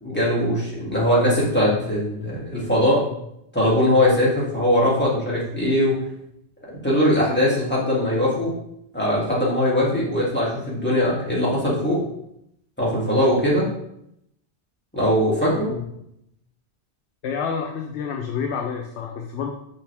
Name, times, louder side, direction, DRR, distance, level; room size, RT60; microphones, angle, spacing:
voice 1, 0.0-3.0 3.5-5.9 6.8-8.5 8.9-12.0 12.8-13.7 14.9-15.7, left 1 dB, 10° left, -7 dB, 2.4 m, -20 dB
voice 2, 17.2-19.5, left 6 dB, 75° left, 3 dB, 0.9 m, -28 dB
5.7 x 5.7 x 3.5 m, 0.77 s
omnidirectional pair, 1.2 m